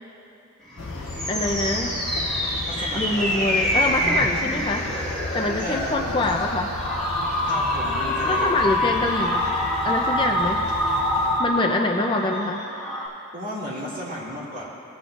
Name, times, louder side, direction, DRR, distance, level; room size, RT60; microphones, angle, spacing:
sound 1, 0.7-13.1, left 1 dB, 5° left, 1.5 m, -26 dB
sound 2, 0.8-11.4, left 2 dB, 80° left, 0.7 m, -35 dB
voice 1, 1.3-2.0 2.9-4.9 5.3-6.7 8.3-9.5 9.8-10.6 11.4-12.6, left 2 dB, 20° left, 2 dB, 0.4 m, -25 dB
voice 2, 2.7-3.3 5.6-6.4 7.5-8.6 13.3-14.6, equal, 40° right, -8 dB, 2.3 m, -34 dB
19.5 x 8.0 x 2.5 m, 2.8 s
head